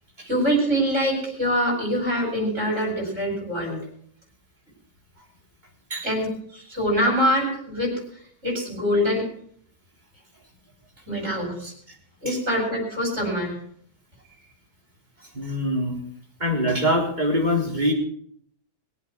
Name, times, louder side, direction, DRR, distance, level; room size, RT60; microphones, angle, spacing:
voice 1, 0.2-3.8 6.0-7.9 8.4-9.3 11.1-11.7 12.2-13.6, equal, 45° right, -2 dB, 6.2 m, -24 dB
voice 2, 15.3-16.0 16.4-17.9, equal, 25° right, -1 dB, 4.0 m, -23 dB
22.0 x 8.2 x 6.1 m, 0.62 s
omnidirectional pair, 1.7 m